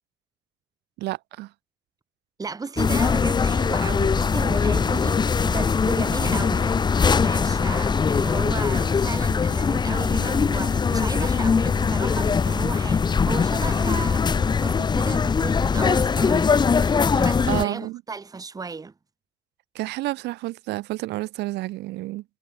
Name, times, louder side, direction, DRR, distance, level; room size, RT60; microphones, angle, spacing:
voice 1, 1.0-1.5 6.3-6.5 17.1-18.0 19.7-22.2, right 18 dB, 85° right, 4.5 m, -30 dB
voice 2, 2.4-18.9, right 4 dB, 20° right, 1.8 m, -34 dB
sound 1, 2.8-17.7, left 5 dB, 25° left, 0.9 m, -21 dB
cardioid pair, 110°, 17 cm